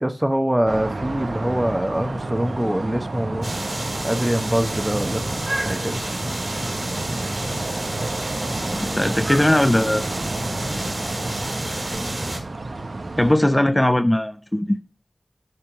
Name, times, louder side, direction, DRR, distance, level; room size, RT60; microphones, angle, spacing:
voice 1, 0.0-3.5 4.0-6.0, right 1 dB, 15° right, 1.0 m, -24 dB
sound 1, 0.7-13.3, right 2 dB, 75° right, 0.8 m, -30 dB
sound 2, 3.4-12.4, right 1 dB, 40° right, 2.3 m, -29 dB
voice 2, 8.9-10.0 13.2-14.8, left 1 dB, 20° left, 0.5 m, -19 dB
9.3 x 3.6 x 5.8 m
wide cardioid pair, 55°, 0 cm